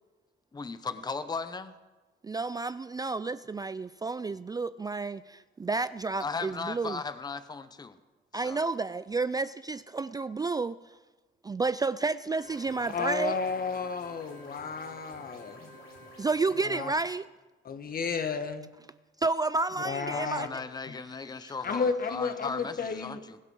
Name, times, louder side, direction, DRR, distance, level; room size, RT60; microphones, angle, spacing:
voice 1, 0.5-1.7 6.2-8.0 8.3-8.6 20.1-23.4, left 4 dB, 20° left, 12 dB, 0.8 m, -37 dB
voice 2, 2.2-7.0 8.3-10.8 11.4-13.4 16.2-17.3 19.2-20.6, right 3 dB, 20° right, 15 dB, 0.3 m, -31 dB
sound 1, 12.4-16.8, equal, 90° left, 3.9 m, -50 dB
voice 3, 12.9-15.7 16.6-16.9 17.6-18.7 19.8-20.5 20.9-21.0 21.6-23.2, left 5 dB, 45° left, 9 dB, 1.4 m, -32 dB
21.0 x 8.0 x 6.3 m, 1.2 s
cardioid pair, 90°, 20 cm